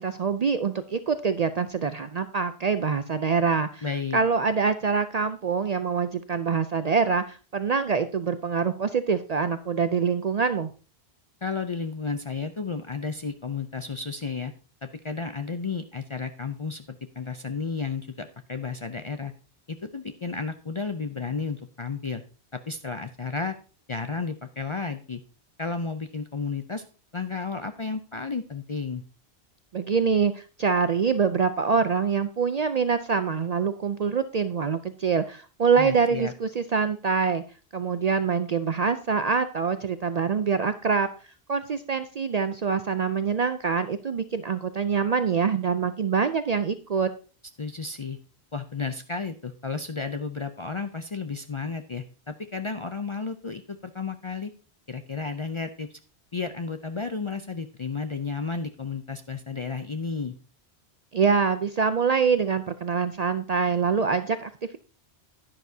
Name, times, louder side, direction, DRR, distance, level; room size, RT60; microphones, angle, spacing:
voice 1, 0.0-3.8 4.1-10.7 29.7-37.4 37.7-41.1 41.5-47.1 61.1-64.5, right 5 dB, 55° right, 11 dB, 0.5 m, -25 dB
voice 2, 3.8-4.2 11.4-14.5 14.8-19.3 19.7-22.2 22.5-23.6 23.9-25.2 25.6-26.8 27.1-29.0 35.7-36.3 47.6-48.2 48.5-54.5 54.9-56.0 56.3-60.3, left 4 dB, 40° left, 8 dB, 0.4 m, -32 dB
11.0 x 10.0 x 2.7 m, 0.36 s
omnidirectional pair, 1.1 m